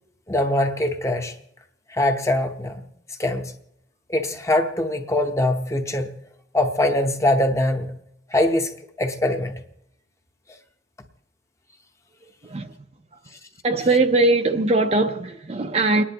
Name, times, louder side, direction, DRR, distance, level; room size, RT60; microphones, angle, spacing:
voice 1, 0.3-1.3 1.9-2.9 3.2-3.5 4.1-6.1 6.5-7.9 8.3-8.7 9.0-9.6, left 1 dB, 15° left, 0.8 m, -22 dB
voice 2, 12.4-12.7 13.6-16.0, right 2 dB, 35° right, 0.6 m, -20 dB
30.0 x 10.0 x 2.9 m
head